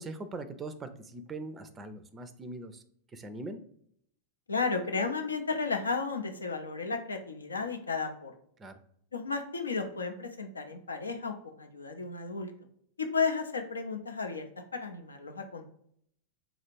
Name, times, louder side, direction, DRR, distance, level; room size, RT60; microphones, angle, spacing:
voice 1, 0.0-2.8 3.1-3.6 8.6-8.8, right 2 dB, 20° right, 11 dB, 0.4 m, -41 dB
voice 2, 4.5-8.3 9.1-12.5 13.1-14.4 14.7-15.7, left 4 dB, 75° left, 5 dB, 0.5 m, -33 dB
3.8 x 2.4 x 4.5 m, 0.68 s
figure-of-eight pair, 90°, 0 cm